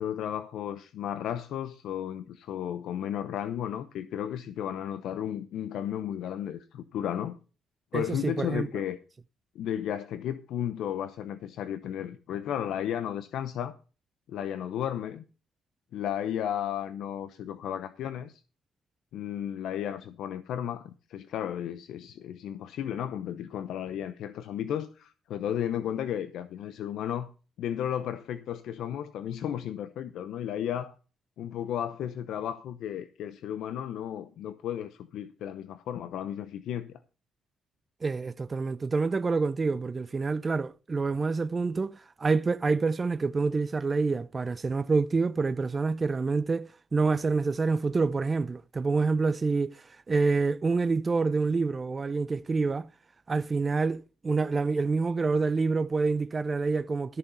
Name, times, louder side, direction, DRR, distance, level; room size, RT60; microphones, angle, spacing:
voice 1, 0.0-7.4 7.9-9.0 9.5-13.7 14.3-15.2 15.9-18.4 19.1-27.3 27.6-31.0 31.4-36.9, left 10 dB, 80° left, 0.8 m, -34 dB
voice 2, 7.9-8.8 38.0-52.9 53.3-57.2, right 4 dB, 30° right, 0.5 m, -27 dB
14.0 x 6.9 x 5.5 m
cardioid pair, 90°, 0 cm